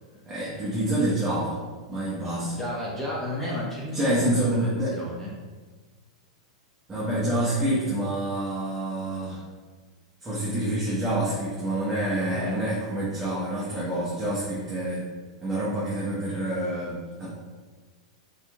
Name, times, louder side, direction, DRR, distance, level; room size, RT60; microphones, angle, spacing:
voice 1, 0.3-1.6 1.9-2.6 3.9-5.0 6.9-9.4 10.2-15.1 15.4-17.3, right 1 dB, 15° right, -9 dB, 1.1 m, -27 dB
voice 2, 2.6-5.3 12.3-12.6, left 1 dB, 5° left, -7 dB, 1.1 m, -33 dB
4.3 x 3.6 x 2.3 m, 1.4 s
figure-of-eight pair, 95°, 3 cm